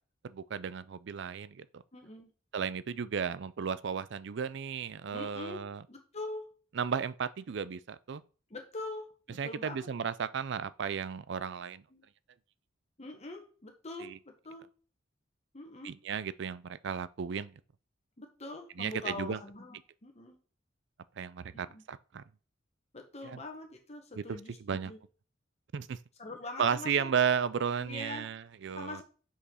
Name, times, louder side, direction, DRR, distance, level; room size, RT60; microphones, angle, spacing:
voice 1, 0.2-1.8 2.5-5.8 6.7-8.2 9.4-11.8 14.0-14.2 15.8-17.5 18.8-19.4 21.2-22.2 23.2-23.4 24.1-24.9 25.7-26.0 26.6-29.0, right 7 dB, 65° right, 0.4 m, -34 dB
voice 2, 1.9-2.3 5.1-5.6 5.9-6.4 8.5-9.9 11.9-12.0 13.0-14.6 15.5-15.9 18.2-20.4 21.5-21.8 22.9-25.0 26.2-27.1 27.8-28.3 28.7-29.0, left 2 dB, 35° left, 1.3 m, -43 dB
6.4 x 5.5 x 5.5 m
head